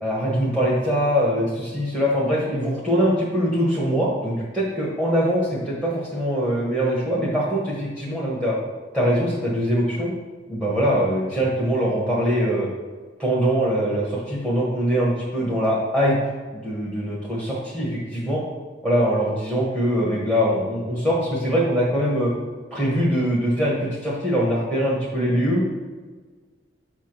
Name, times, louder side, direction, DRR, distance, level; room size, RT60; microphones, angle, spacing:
voice 1, 0.0-8.6 8.9-10.1 10.5-12.7 13.2-16.2 16.5-18.4 18.8-22.3 22.7-25.6, equal, 5° right, -7 dB, 1.3 m, -22 dB
7.1 x 3.6 x 6.0 m, 1.4 s
head